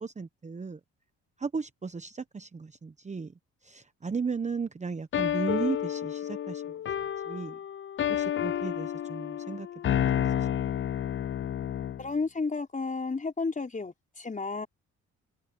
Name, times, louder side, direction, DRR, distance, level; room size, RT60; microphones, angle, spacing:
voice 1, 0.0-0.8 1.4-3.3 3.6-6.6 7.3-7.6 8.1-10.5, right 5 dB, 25° right, 1.0 m, -35 dB
sound 1, 5.1-12.1, left 10 dB, 40° left, 0.5 m, -30 dB
voice 2, 12.0-14.7, left 4 dB, 25° left, 5.2 m, -32 dB
cardioid pair, 90°, 30 cm